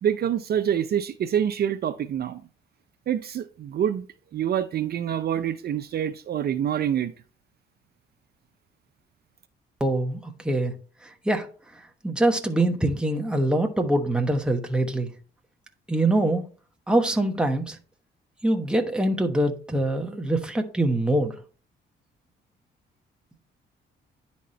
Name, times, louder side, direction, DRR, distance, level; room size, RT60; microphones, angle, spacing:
voice 1, 0.0-2.4 3.1-4.1 4.3-7.1, right 9 dB, 50° right, 0.5 m, -26 dB
voice 2, 9.8-10.7 11.2-11.5 12.0-15.1 15.9-16.4 16.9-17.8 18.4-21.3, right 1 dB, 5° right, 1.1 m, -24 dB
10.0 x 4.2 x 3.2 m
cardioid pair, 90°, 20 cm